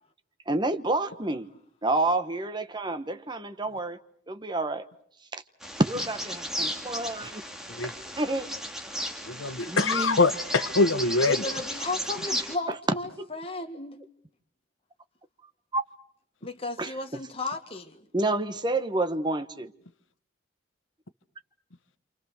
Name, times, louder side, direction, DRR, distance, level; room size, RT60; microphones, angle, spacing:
voice 1, 0.5-1.5 1.8-4.0 4.3-4.9 5.3-5.4 5.8-7.4 8.2-8.5 9.7-10.2 10.6-10.7 13.2-13.3 15.7-15.8 16.8-17.2 18.1-19.7, right 2 dB, 25° right, 1.2 m, -29 dB
Bird vocalization bird call bird song, 5.6-12.5, equal, 5° right, 2.4 m, -35 dB
voice 2, 9.3-11.4, left 3 dB, 90° left, 1.2 m, -24 dB
voice 3, 11.3-14.0 16.4-18.1, left 3 dB, 30° left, 1.8 m, -34 dB
28.0 x 27.0 x 6.6 m
head